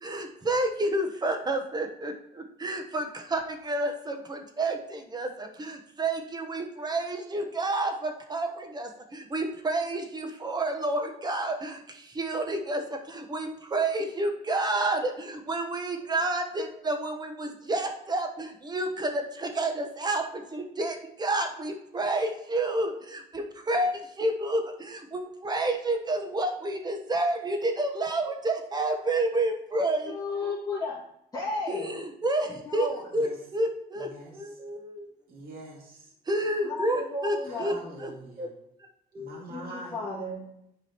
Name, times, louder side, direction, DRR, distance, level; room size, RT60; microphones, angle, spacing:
voice 1, 0.0-30.1 30.4-30.5 31.7-32.9 33.1-35.1 36.3-37.7 38.0-38.1 38.4-38.5 39.1-39.4, right 2 dB, 25° right, 5 dB, 1.1 m, -30 dB
voice 2, 30.1-31.0 31.3-32.0 32.4-33.1 36.6-37.7 39.5-40.4, left 3 dB, 20° left, -8 dB, 2.2 m, -34 dB
voice 3, 34.0-34.5 35.3-36.1 37.4-38.5 39.1-40.0, right 1 dB, 60° right, -3 dB, 2.4 m, -44 dB
9.8 x 4.8 x 3.0 m, 0.77 s
cardioid pair, 110°, 17 cm